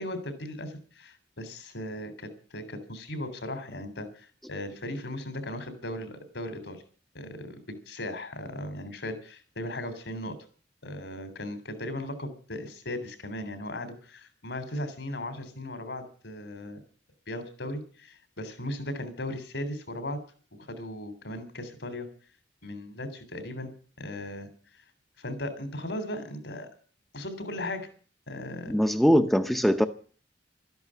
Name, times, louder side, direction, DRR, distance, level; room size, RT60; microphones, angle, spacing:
voice 1, 0.0-6.8 7.1-7.6 7.9-10.4 10.8-16.8 17.3-20.2 20.7-22.1 22.6-23.7 24.0-24.5 25.2-26.7 27.1-27.9 28.3-28.7, left 1 dB, 70° left, 3.5 m, -37 dB
voice 2, 28.7-29.9, equal, ahead, 0.7 m, -22 dB
13.5 x 11.0 x 8.9 m
head